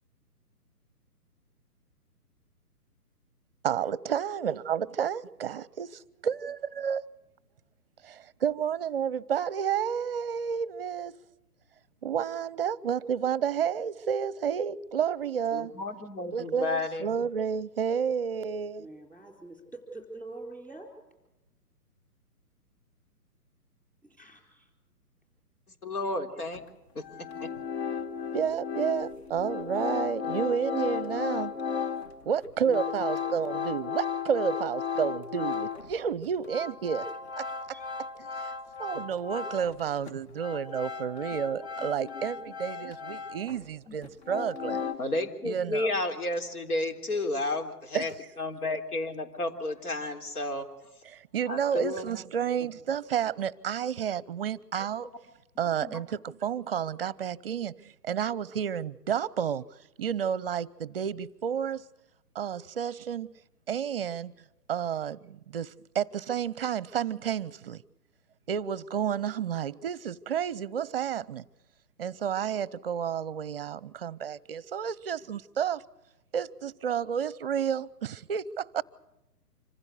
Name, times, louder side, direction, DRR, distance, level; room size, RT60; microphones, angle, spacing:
voice 1, 3.6-7.0 8.0-11.2 12.0-15.7 16.3-18.9 28.3-31.6 32.3-37.1 37.4-37.8 38.2-38.5 38.8-44.8 45.4-45.9 47.9-48.1 51.1-55.1 55.6-59.6 60.0-61.8 62.3-63.3 63.7-64.3 64.7-67.8 68.5-71.4 72.0-75.8 76.3-78.8, right 8 dB, 40° right, 0.7 m, -31 dB
voice 2, 15.5-17.1 25.8-26.6 26.9-27.5 42.0-42.3 43.9-44.0 44.8-50.7 51.5-52.1 55.8-56.0, left 2 dB, 70° left, 3.8 m, -32 dB
voice 3, 18.8-20.9 24.0-24.7 37.7-37.9, right 2 dB, 5° left, 4.1 m, -45 dB
sound 1, 26.5-26.6 27.0-35.9 36.3-39.8 40.1-43.7 44.0-45.0, left 6 dB, 40° left, 1.6 m, -35 dB
26.0 x 15.5 x 8.2 m
hypercardioid pair, 145°, 47 cm